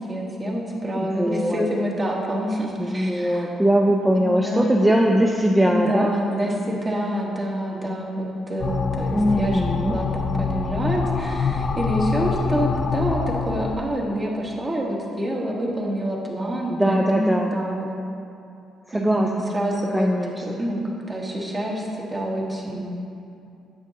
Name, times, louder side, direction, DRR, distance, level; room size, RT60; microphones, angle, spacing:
voice 1, 0.0-3.5 4.1-4.8 5.6-17.9 18.9-20.1 20.4-20.8 21.1-22.9, equal, 30° right, -2 dB, 1.4 m, -27 dB
voice 2, 0.9-1.7 2.8-6.1 9.1-10.0 16.7-17.6 18.9-19.5 19.9-20.4, equal, 10° right, -1 dB, 0.5 m, -21 dB
sound 1, 8.6-13.8, left 5 dB, 45° left, 0.4 m, -25 dB
8.7 x 7.3 x 2.8 m, 2.6 s
cardioid pair, 90°, 0 cm